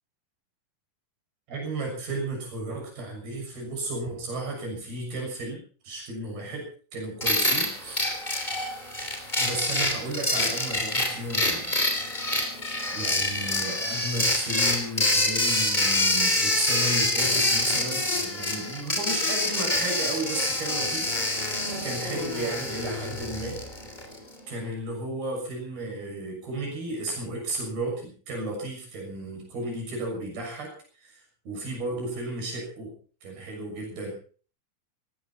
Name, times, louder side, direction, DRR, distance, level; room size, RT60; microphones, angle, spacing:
voice 1, 1.5-8.1 9.4-11.8 12.9-23.6 24.5-30.7 31.0-34.2, right 2 dB, 85° right, 0 dB, 8.5 m, -34 dB
sound 1, 7.2-24.2, left 1 dB, 15° left, 3.0 m, -26 dB
18.5 x 17.5 x 4.2 m, 0.41 s
omnidirectional pair, 4.3 m